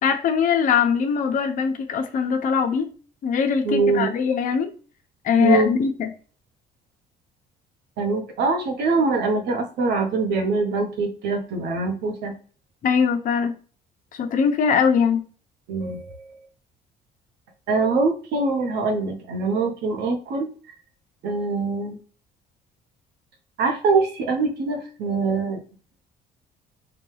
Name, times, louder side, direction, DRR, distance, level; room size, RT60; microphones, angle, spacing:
voice 1, 0.0-2.9 3.2-4.7 5.2-6.1 12.8-13.5 14.2-15.2, left 6 dB, 50° left, 4 dB, 0.7 m, -21 dB
voice 2, 3.6-4.1 5.4-5.8 8.0-12.3 15.7-16.2 17.7-20.5 21.2-22.0 23.6-25.6, right 3 dB, 80° right, 4 dB, 1.1 m, -23 dB
5.0 x 2.3 x 3.2 m, 0.38 s
cardioid pair, 110°, 17 cm